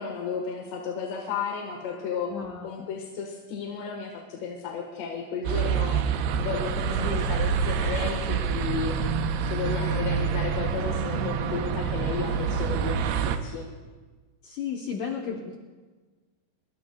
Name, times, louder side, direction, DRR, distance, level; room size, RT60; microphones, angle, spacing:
voice 1, 0.0-2.3 2.6-9.0 9.5-13.7, left 6 dB, 90° left, 0 dB, 3.7 m, -33 dB
voice 2, 2.3-2.9 7.0-7.3 11.1-11.9 14.4-15.6, left 6 dB, 70° left, 0 dB, 2.1 m, -34 dB
sound 1, 5.4-13.4, right 6 dB, 80° right, 2.8 m, -27 dB
27.0 x 22.5 x 2.3 m, 1.4 s
omnidirectional pair, 4.8 m